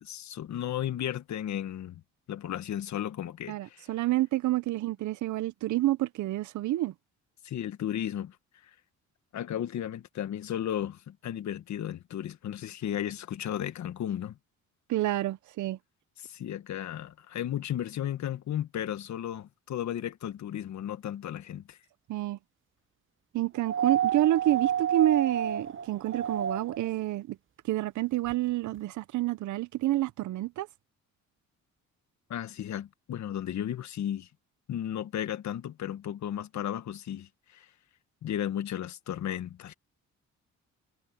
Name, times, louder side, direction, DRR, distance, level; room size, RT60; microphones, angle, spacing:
voice 1, 0.0-2.0 2.3-3.9 7.4-8.4 9.3-14.4 16.2-21.8 32.3-34.3 34.7-37.7 38.2-39.7, left 10 dB, 65° left, 1.6 m, -34 dB
voice 2, 3.5-6.9 14.9-15.8 22.1-22.4 23.3-27.4 27.7-30.7, right 15 dB, 75° right, 0.7 m, -28 dB
sound 1, 23.6-26.9 28.3-28.4, right 9 dB, 40° right, 0.9 m, -30 dB
cardioid pair, 90°, 30 cm